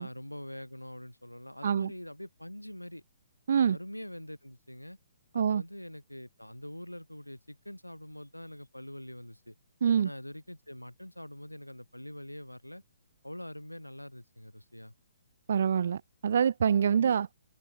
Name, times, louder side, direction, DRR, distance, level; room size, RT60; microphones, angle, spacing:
voice 1, 0.0-3.0 3.5-5.0 5.3-9.6 10.0-12.8 13.2-14.9 16.8-17.1, left 1 dB, 90° left, 4.0 m, -44 dB
voice 2, 15.5-17.3, right 7 dB, 55° right, 0.4 m, -26 dB
open air
figure-of-eight pair, 125°, 0 cm